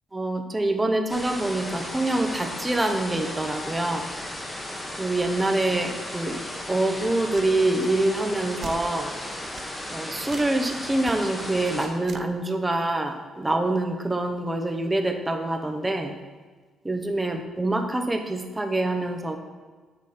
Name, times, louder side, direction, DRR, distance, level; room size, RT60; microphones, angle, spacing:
voice 1, 0.1-4.1 5.0-6.4 6.7-9.1 9.9-16.2 16.8-19.4, right 2 dB, 15° right, 5 dB, 0.7 m, -25 dB
sound 1, 1.1-11.9, left 1 dB, 20° left, 1.0 m, -35 dB
sound 2, 7.3-7.5 8.6-8.9 9.6-9.7 10.3-10.6 11.0-11.1 12.0-12.3, right 6 dB, 50° right, 0.3 m, -40 dB
6.6 x 4.0 x 4.9 m, 1.4 s
cardioid pair, 90°, 0 cm